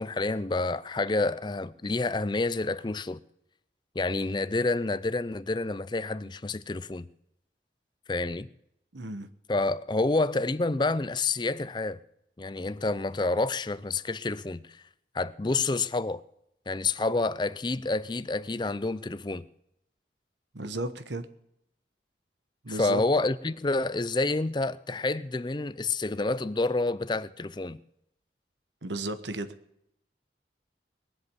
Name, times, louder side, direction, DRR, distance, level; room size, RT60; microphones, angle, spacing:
voice 1, 0.0-3.2 4.0-7.1 8.1-8.5 9.5-12.0 12.4-14.6 15.1-16.2 16.7-19.5 22.7-27.8, left 3 dB, 25° left, 0.5 m, -28 dB
voice 2, 8.9-9.3 20.5-21.3 22.6-23.0 28.8-29.5, right 2 dB, 85° right, 1.3 m, -34 dB
21.0 x 8.0 x 7.1 m
head